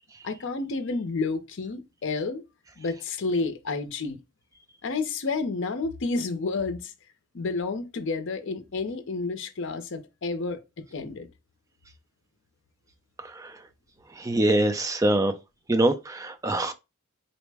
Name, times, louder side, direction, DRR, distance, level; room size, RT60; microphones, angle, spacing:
voice 1, 0.2-2.4 2.8-4.2 4.8-6.8 7.3-10.6 10.9-11.3, left 3 dB, 55° left, 0.5 m, -30 dB
voice 2, 14.2-15.3 15.7-16.7, right 1 dB, 15° right, 0.3 m, -24 dB
4.0 x 2.1 x 3.3 m
head